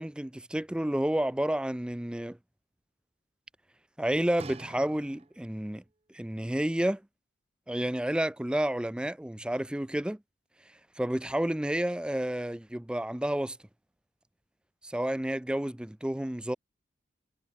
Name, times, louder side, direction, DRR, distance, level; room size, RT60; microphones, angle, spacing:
voice 1, 0.0-2.4 4.0-5.8 6.1-7.0 7.7-10.2 11.0-13.6 14.8-16.6, right 1 dB, 5° right, 0.4 m, -30 dB
sound 1, 4.4-5.7 6.4-6.5, right 3 dB, 30° right, 0.8 m, -47 dB
head